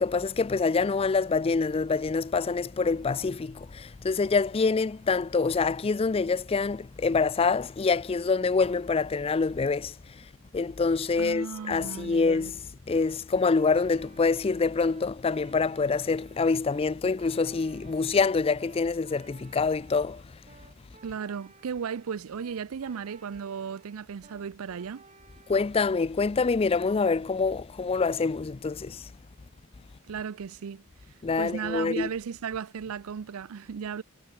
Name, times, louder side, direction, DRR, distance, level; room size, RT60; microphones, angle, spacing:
voice 1, 0.0-10.0 10.5-12.6 12.9-20.2 25.5-29.1 31.2-32.1, left 4 dB, 25° left, 0.4 m, -26 dB
sound 1, 11.1-25.9, right 3 dB, 30° right, 4.7 m, -56 dB
voice 2, 11.2-12.5 21.0-25.0 30.1-30.8 31.4-34.0, right 6 dB, 75° right, 0.5 m, -35 dB
head